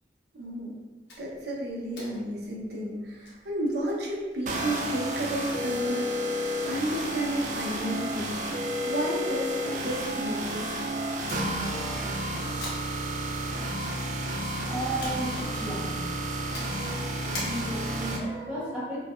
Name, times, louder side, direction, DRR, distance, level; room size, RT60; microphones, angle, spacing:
voice 1, 0.3-0.8 1.2-6.4 6.7-8.4 8.8-10.7, right 1 dB, 70° right, -3 dB, 0.8 m, -32 dB
sound 1, 1.1-18.1, left 1 dB, 85° left, 1.2 m, -48 dB
sound 2, 4.5-18.2, right 1 dB, 45° right, 0.4 m, -31 dB
voice 2, 14.1-19.0, right 1 dB, 5° right, -8 dB, 0.7 m, -35 dB
4.6 x 2.3 x 2.4 m, 1.3 s
head